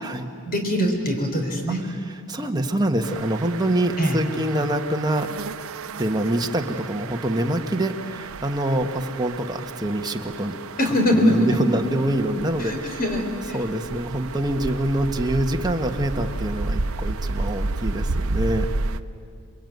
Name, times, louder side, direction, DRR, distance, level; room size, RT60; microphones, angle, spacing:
voice 1, 0.4-1.9 4.0-4.2 10.8-11.6 12.6-13.6, equal, 45° left, 3 dB, 4.0 m, -23 dB
voice 2, 2.3-5.3 6.0-10.6 10.8-13.0 13.5-18.7, right 1 dB, 20° right, 4 dB, 1.5 m, -25 dB
sound 1, 3.0-19.0, right 3 dB, 75° right, 0.8 m, -32 dB
28.5 x 21.5 x 9.4 m, 2.4 s
head